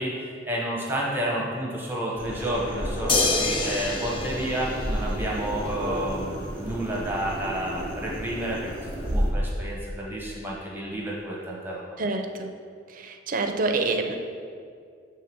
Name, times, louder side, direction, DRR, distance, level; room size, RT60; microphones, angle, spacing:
voice 1, 0.0-8.7 9.1-11.8, right 1 dB, 10° right, -3 dB, 0.9 m, -30 dB
sound 1, 2.2-9.2, equal, 10° left, 1.5 m, -32 dB
sound 2, 3.1-5.6 7.3-7.4, left 3 dB, 30° left, 0.6 m, -27 dB
voice 2, 12.0-12.5 12.9-14.2, right 3 dB, 50° right, 5 dB, 0.5 m, -27 dB
7.5 x 3.3 x 6.0 m, 2.3 s
head